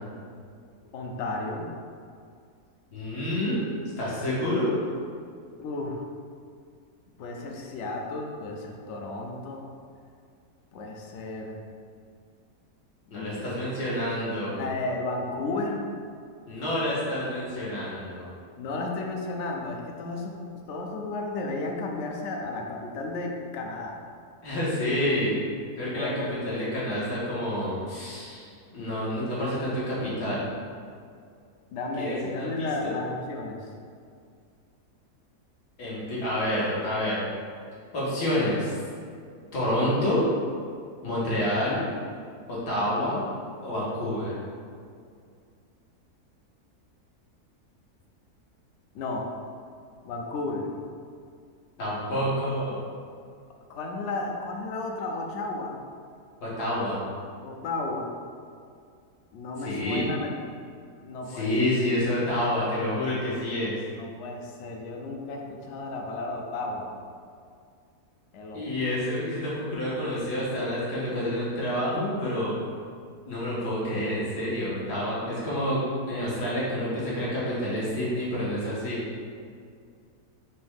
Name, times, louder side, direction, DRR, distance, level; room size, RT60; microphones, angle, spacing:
voice 1, 0.9-1.7 5.6-6.0 7.2-9.7 10.7-11.6 13.1-13.7 14.6-15.9 18.6-20.4 20.7-24.0 25.9-26.3 31.7-33.7 48.9-49.3 50.0-50.7 53.7-55.8 57.4-58.1 59.3-60.3 61.0-61.7 64.0-67.0 68.3-68.7, left 2 dB, 70° left, 2 dB, 0.7 m, -33 dB
voice 2, 2.9-3.6 4.0-4.8 13.1-14.6 16.5-18.4 24.4-25.4 25.8-30.4 32.0-33.0 35.8-37.2 37.9-38.7 39.5-40.2 41.0-41.8 42.5-43.2 43.6-44.4 51.8-52.8 56.4-57.0 59.6-60.1 61.3-63.8 68.5-72.5 73.3-75.8 76.1-79.1, left 1 dB, 85° left, -8 dB, 1.8 m, -28 dB
4.4 x 3.1 x 3.5 m, 2.2 s
omnidirectional pair, 1.7 m